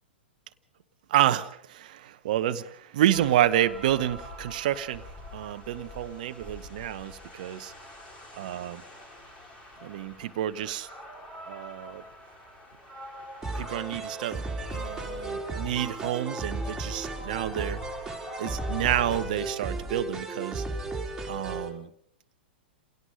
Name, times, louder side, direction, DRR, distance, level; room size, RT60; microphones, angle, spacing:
voice 1, 1.1-5.0 5.3-7.7 8.4-8.8 9.8-10.9 11.5-12.0 13.5-17.8 18.4-20.6 21.3-21.9, right 12 dB, 50° right, 11 dB, 1.0 m, -29 dB
sound 1, 3.1-19.2, left 1 dB, 20° left, 6.4 m, -44 dB
sound 2, 13.4-21.7, right 3 dB, 5° right, 3.8 m, -35 dB
29.0 x 17.5 x 5.2 m, 0.65 s
figure-of-eight pair, 105°, 6 cm